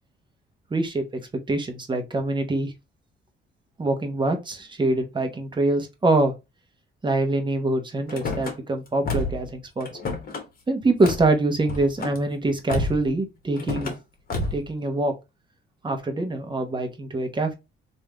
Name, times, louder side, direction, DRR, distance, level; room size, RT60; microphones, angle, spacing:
voice 1, 0.7-1.1 1.5-2.7 3.8-6.3 7.0-9.9 10.7-13.9 14.5-15.1 15.8-17.5, right 2 dB, 25° right, 1.0 m, -24 dB
Car / Slam, 8.1-8.5 9.0-9.5 9.8-10.4 11.0-11.3 11.6-12.2 12.7-13.1 13.6-14.0 14.3-14.7, left 2 dB, 50° left, 1.2 m, -29 dB
3.2 x 2.7 x 3.3 m
cardioid pair, 90°, 20 cm